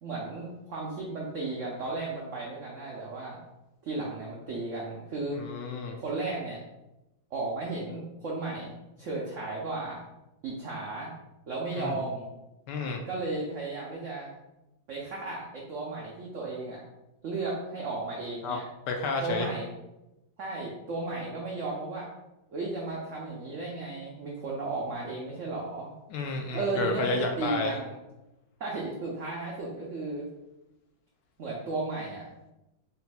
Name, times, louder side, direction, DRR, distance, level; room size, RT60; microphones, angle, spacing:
voice 1, 0.0-3.4 3.8-5.4 6.0-6.6 7.3-10.0 10.4-11.1 11.5-12.3 13.1-14.3 14.9-16.9 17.2-18.6 19.2-19.7 20.4-22.1 22.5-25.9 26.5-27.9 28.6-30.3 31.4-32.3, right 3 dB, 75° right, -3 dB, 0.6 m, -34 dB
voice 2, 5.3-6.0 11.7-12.0 12.7-13.0 18.4-18.6 18.9-19.5 26.1-27.7, left 3 dB, 75° left, 3 dB, 1.1 m, -31 dB
4.0 x 2.2 x 4.1 m, 0.95 s
omnidirectional pair, 2.1 m